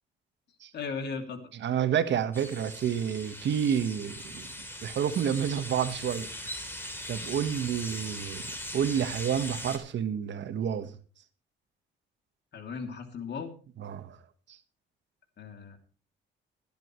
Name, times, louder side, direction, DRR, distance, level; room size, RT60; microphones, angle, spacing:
voice 1, 0.7-1.4 12.5-13.5 15.4-15.8, left 5 dB, 60° left, 2.9 m, -36 dB
voice 2, 1.5-4.5 4.8-6.3 7.1-10.9 13.8-14.2 14.5-14.6, right 8 dB, 65° right, 1.5 m, -29 dB
sound 1, 2.3-9.8, equal, 10° left, 3.4 m, -40 dB
21.5 x 10.5 x 3.2 m
cardioid pair, 90°, 20 cm